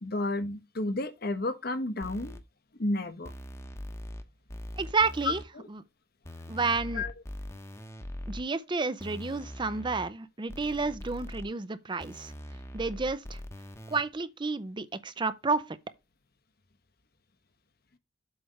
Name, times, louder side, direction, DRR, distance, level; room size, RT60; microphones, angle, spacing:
voice 1, 0.0-2.4 2.8-3.3 5.2-5.7 6.9-7.1, left 2 dB, 55° left, 1.1 m, -31 dB
sound 1, 2.0-2.4 3.2-4.2 4.5-5.4 6.2-8.4 9.0-10.1 10.5-11.5 12.0-14.0, left 1 dB, 15° left, 1.0 m, -42 dB
voice 2, 4.8-5.4 5.7-5.8 6.5-7.1 8.3-12.3 12.7-13.4 13.9-15.8, right 4 dB, 25° right, 0.6 m, -30 dB
8.0 x 3.3 x 6.3 m
head